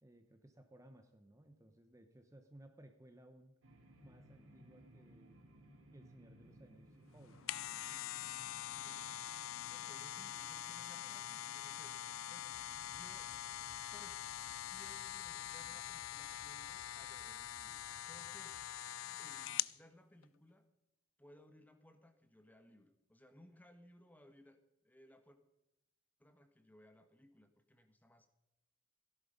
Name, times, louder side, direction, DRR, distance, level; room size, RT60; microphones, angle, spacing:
voice 1, 0.0-3.5 4.0-5.4 5.9-7.4, right 1 dB, 15° right, 6 dB, 0.9 m, -61 dB
sound 1, 3.6-15.8, right 1 dB, 80° right, 3.1 m, -63 dB
sound 2, 7.2-19.8 20.2-20.3, left 12 dB, 75° left, 0.4 m, -44 dB
voice 2, 8.6-9.0 9.5-13.3 13.9-14.2 14.7-18.8 19.2-20.7 21.2-25.4 26.2-28.3, left 1 dB, 10° left, 7 dB, 1.3 m, -63 dB
sound 3, 12.5-18.7, equal, 50° right, 2.6 m, -66 dB
17.0 x 11.0 x 5.2 m, 0.89 s
head